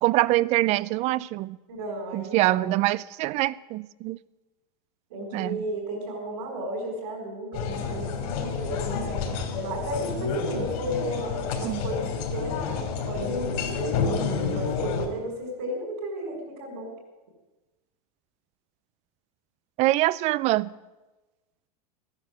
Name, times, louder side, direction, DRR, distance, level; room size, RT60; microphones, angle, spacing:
voice 1, 0.0-1.6 2.1-4.2 5.3-5.6 11.6-11.8 19.8-20.7, right 17 dB, 35° right, 0.4 m, -24 dB
voice 2, 1.7-2.8 5.1-9.2 9.5-13.9 14.5-16.9, right 1 dB, 65° right, 5.6 m, -34 dB
sound 1, 7.5-15.1, left 5 dB, 60° left, 3.3 m, -29 dB
15.0 x 10.5 x 7.7 m
supercardioid pair, 140°, 20 cm